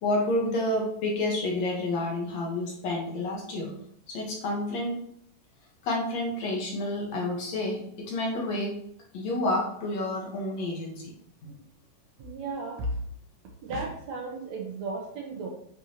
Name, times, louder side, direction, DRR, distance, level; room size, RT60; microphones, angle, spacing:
voice 1, 0.0-3.7 4.1-5.0 5.8-8.8 9.1-11.1 11.4-11.5, left 1 dB, 60° left, -2 dB, 2.3 m, -29 dB
voice 2, 12.2-12.9 13.6-15.5, right 3 dB, 65° right, 0 dB, 2.0 m, -35 dB
9.0 x 5.4 x 2.9 m, 0.68 s
omnidirectional pair, 3.9 m